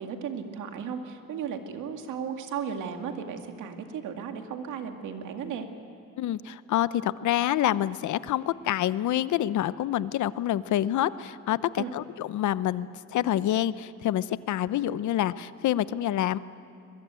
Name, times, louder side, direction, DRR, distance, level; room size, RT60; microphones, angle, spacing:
voice 1, 0.0-5.7 11.8-11.9, right 7 dB, 85° right, 5 dB, 2.3 m, -35 dB
voice 2, 6.2-16.4, left 12 dB, 75° left, 16 dB, 0.8 m, -27 dB
22.5 x 22.0 x 9.0 m, 2.6 s
cardioid pair, 90°, 30 cm